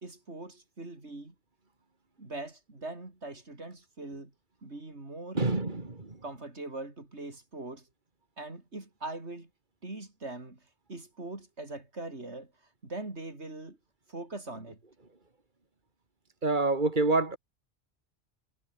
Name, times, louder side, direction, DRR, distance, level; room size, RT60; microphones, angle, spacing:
voice 1, 0.0-1.3 2.2-4.3 4.6-5.4 6.2-7.9 8.4-9.5 9.8-10.6 10.9-12.5 12.8-13.8 14.1-14.8, right 2 dB, 85° right, 4.6 m, -41 dB
voice 2, 5.3-6.2 16.4-17.4, right 3 dB, 45° right, 3.1 m, -27 dB
omnidirectional pair, 1.1 m